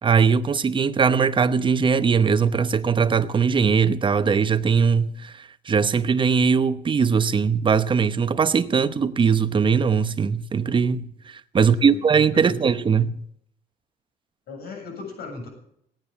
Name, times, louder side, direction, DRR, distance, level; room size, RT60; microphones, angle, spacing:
voice 1, 0.0-13.2, right 6 dB, 30° right, 0.8 m, -20 dB
voice 2, 11.6-12.0 12.3-12.6 14.5-15.5, left 3 dB, 70° left, 7.3 m, -36 dB
17.0 x 9.6 x 7.3 m
cardioid pair, 110°, 17 cm